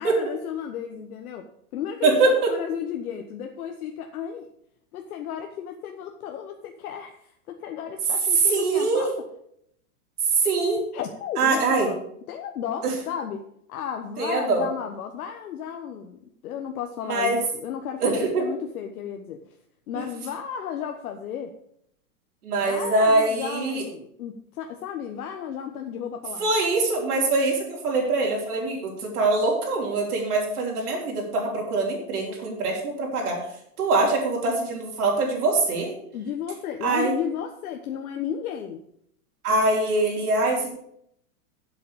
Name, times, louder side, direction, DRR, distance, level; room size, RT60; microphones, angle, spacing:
voice 1, 0.0-4.5 4.9-7.1 7.5-9.1 10.9-12.0 12.3-13.4 13.7-19.4 19.9-21.5 22.6-26.6 36.1-38.8, left 8 dB, 70° left, 4 dB, 1.3 m, -33 dB
voice 2, 2.0-2.5 8.5-9.1 10.3-10.8 11.4-11.9 12.8-12.9 14.2-14.6 17.1-17.4 18.0-18.4 19.9-20.0 22.4-23.8 26.4-33.4 33.8-35.9 36.8-37.1 39.4-40.7, right 3 dB, 75° right, -1 dB, 4.5 m, -23 dB
7.9 x 7.6 x 7.0 m, 0.71 s
supercardioid pair, 155°, 45 cm